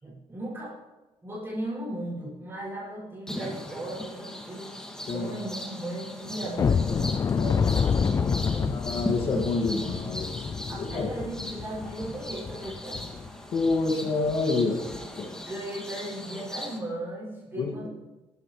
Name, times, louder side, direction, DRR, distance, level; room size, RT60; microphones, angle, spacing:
voice 1, 0.0-0.8 1.2-4.7 5.1-8.8 10.7-13.0 15.5-17.9, right 1 dB, 25° right, -7 dB, 6.8 m, -36 dB
sound 1, 3.3-16.8, left 1 dB, 5° left, 2.5 m, -39 dB
sound 2, 6.6-13.3 13.7-13.8 14.2-14.4 14.9-15.0, left 6 dB, 30° left, 0.4 m, -28 dB
voice 2, 8.7-10.3 10.8-11.1 13.5-15.3 17.5-17.7, left 3 dB, 60° left, -2 dB, 2.3 m, -27 dB
24.0 x 13.0 x 3.4 m, 1.1 s
cardioid pair, 115°, 10 cm